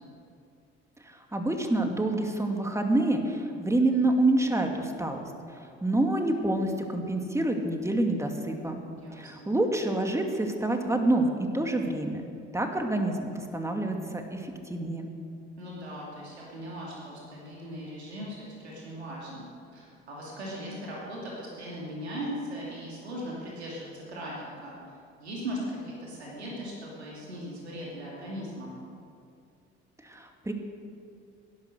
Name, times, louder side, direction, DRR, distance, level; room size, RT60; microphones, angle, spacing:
voice 1, 1.3-5.3 5.8-8.8 9.2-11.3 11.5-12.2 12.5-14.4 14.7-15.1 30.0-30.5, right 2 dB, 10° right, 3 dB, 2.4 m, -27 dB
voice 2, 8.9-9.5 15.6-24.7 25.2-28.7, equal, 90° right, -4 dB, 2.6 m, -39 dB
17.5 x 11.5 x 6.6 m, 2.4 s
hypercardioid pair, 55°, 32 cm